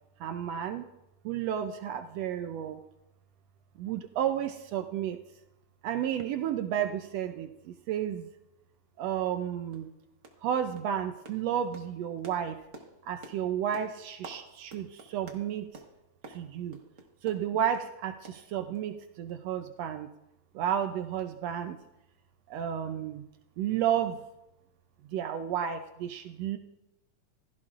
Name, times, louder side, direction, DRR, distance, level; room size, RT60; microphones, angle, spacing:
voice 1, 0.2-0.9 1.2-2.8 3.8-5.2 5.8-7.5 7.9-8.3 9.0-9.9 10.4-12.6 13.1-15.7 16.3-16.8 17.2-20.1 20.5-21.8 22.5-23.2 23.6-24.2 25.1-26.6, right 9 dB, 75° right, 7 dB, 1.6 m, -32 dB
sound 1, 8.7-8.8 9.3-9.4 9.7-9.9 10.2-10.5 10.8-17.9 18.2-19.0 19.3-19.4 19.8-19.9, right 3 dB, 60° right, 0.8 m, -51 dB
15.5 x 14.5 x 2.5 m, 0.92 s
omnidirectional pair, 3.3 m